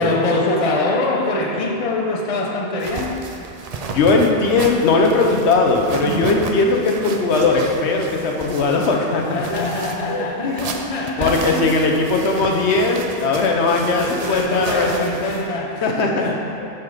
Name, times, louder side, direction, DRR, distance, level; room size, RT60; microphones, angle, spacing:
voice 1, 0.0-3.2 9.3-11.7 12.4-12.5 13.2-13.3 13.6-15.9 16.2-16.4, left 2 dB, 35° left, 0 dB, 0.7 m, -23 dB
sound 1, 2.8-15.5, right 3 dB, 50° right, 0.4 m, -32 dB
voice 2, 3.9-9.4 10.1-10.7 11.2-15.1 15.8-16.8, left 3 dB, 75° left, 1 dB, 1.0 m, -19 dB
7.6 x 4.4 x 5.0 m, 2.7 s
omnidirectional pair, 1.2 m